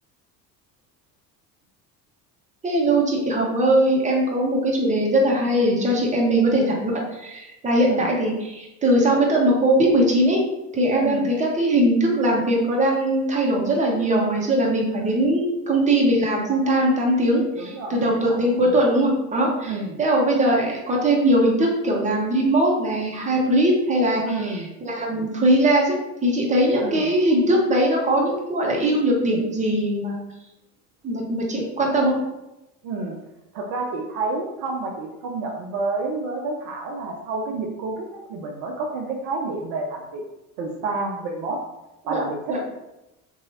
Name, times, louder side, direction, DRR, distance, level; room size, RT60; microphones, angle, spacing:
voice 1, 2.6-10.4 10.7-26.0 26.2-30.2 31.0-32.2 42.0-42.2 42.5-42.6, right 1 dB, 15° right, -2 dB, 0.8 m, -20 dB
voice 2, 14.9-15.2 17.6-18.4 19.6-20.0 24.2-24.7 26.8-27.0 32.8-33.2 33.5-40.2 40.6-41.6 42.1-42.4, right 3 dB, 55° right, 1 dB, 0.5 m, -29 dB
2.7 x 2.3 x 2.8 m, 0.95 s
hypercardioid pair, 65°, 47 cm